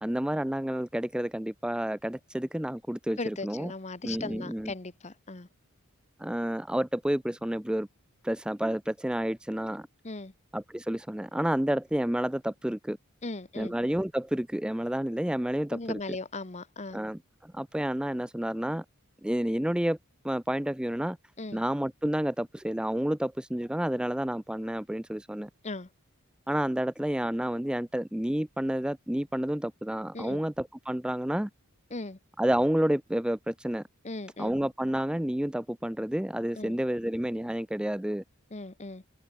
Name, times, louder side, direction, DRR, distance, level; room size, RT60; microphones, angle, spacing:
voice 1, 0.0-3.7 4.0-4.7 6.2-7.9 8.2-9.9 10.5-13.0 13.5-16.2 16.9-18.8 19.2-20.0 20.2-21.2 21.5-25.5 26.5-31.5 32.4-33.8 34.4-38.2, right 1 dB, 5° right, 0.4 m, -30 dB
voice 2, 3.2-5.5 10.0-10.3 13.2-13.7 15.7-17.0 21.4-21.6 25.6-25.9 30.1-30.4 31.9-32.2 34.0-34.6 36.6-36.8 38.5-39.0, left 3 dB, 30° left, 1.1 m, -38 dB
open air
head